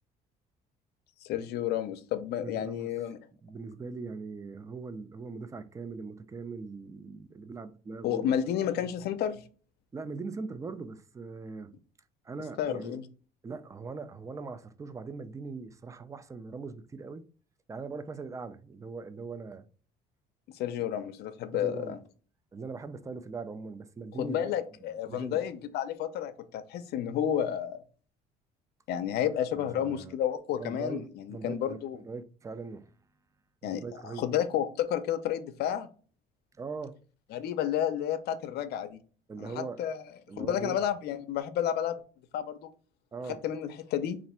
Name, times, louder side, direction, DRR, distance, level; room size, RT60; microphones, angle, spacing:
voice 1, 1.2-3.2 8.0-9.4 12.6-13.0 20.6-22.0 24.2-27.8 28.9-32.0 33.6-35.9 37.3-39.0 39.4-40.0 40.4-42.0 42.3-42.6 43.4-44.2, left 10 dB, 70° left, 0.5 m, -31 dB
voice 2, 2.4-3.0 3.4-8.4 9.9-11.7 12.2-13.0 13.4-17.3 17.7-19.7 20.8-20.9 21.5-22.0 22.5-24.4 24.9-25.4 29.2-29.3 29.5-30.2 30.5-33.0 33.6-34.3 36.6-37.0 39.3-39.9 40.3-40.8 43.1-43.4, right 4 dB, 20° right, 0.3 m, -41 dB
3.1 x 2.5 x 4.2 m
cardioid pair, 110°, 17 cm